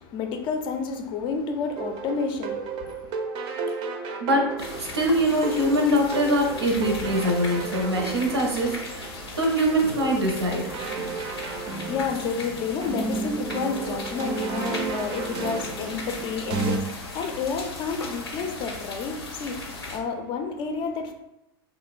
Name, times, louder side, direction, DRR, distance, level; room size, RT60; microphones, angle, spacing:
voice 1, 0.0-3.1 11.5-21.1, left 5 dB, 40° left, 0.4 m, -30 dB
sound 1, 1.8-16.8, right 4 dB, 40° right, 0.4 m, -33 dB
sound 2, 4.6-20.0, left 2 dB, 85° left, 0.6 m, -37 dB
voice 2, 4.8-9.1 9.4-10.6, equal, 90° right, 0.6 m, -23 dB
2.9 x 2.0 x 2.3 m
hypercardioid pair, 100°, 13 cm